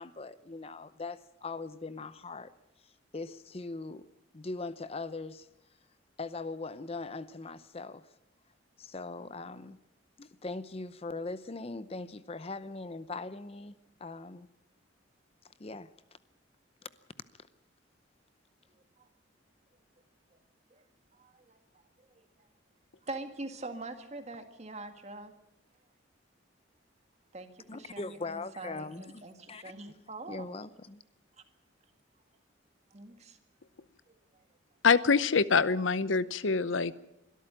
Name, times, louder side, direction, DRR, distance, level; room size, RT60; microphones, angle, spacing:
voice 1, 0.0-2.5 2.8-4.1 4.3-5.5 6.2-8.1 8.8-9.8 10.2-13.7 14.0-14.5 15.4-15.9 16.8-16.9 27.7-29.2 29.5-29.6 30.3-31.0, left 3 dB, 30° left, 14 dB, 0.7 m, -40 dB
voice 2, 21.1-21.6 22.1-22.3 23.0-25.3 27.3-27.5 27.7-30.5 32.9-33.4 34.1-34.4, right 2 dB, 35° right, 7 dB, 1.9 m, -44 dB
voice 3, 34.8-37.0, left 5 dB, 90° left, 16 dB, 0.8 m, -25 dB
23.0 x 13.0 x 8.9 m, 0.86 s
head